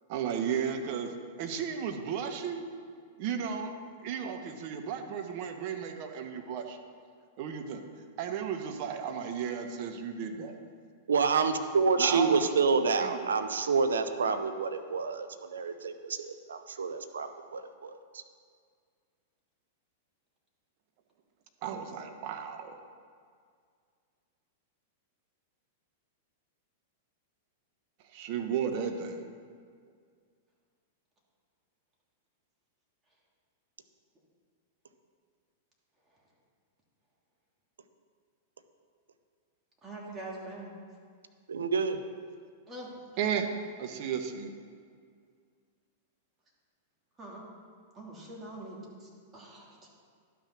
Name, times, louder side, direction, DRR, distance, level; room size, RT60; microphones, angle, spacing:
voice 1, 0.1-1.1 1.4-2.6 3.2-3.7 4.0-6.8 7.4-7.8 8.2-10.6 12.0-12.5 13.0-13.2 21.6-22.8 28.1-29.3 43.2-43.5 43.8-44.5, right 7 dB, 50° right, 6 dB, 1.2 m, -34 dB
voice 2, 11.1-18.2 41.5-42.0, right 5 dB, 85° right, 8 dB, 0.7 m, -28 dB
voice 3, 39.8-40.7 42.7-42.9 47.2-47.4 47.9-49.9, right 1 dB, 25° right, -3 dB, 2.9 m, -44 dB
12.0 x 6.0 x 6.0 m, 2.1 s
hypercardioid pair, 110°, 0 cm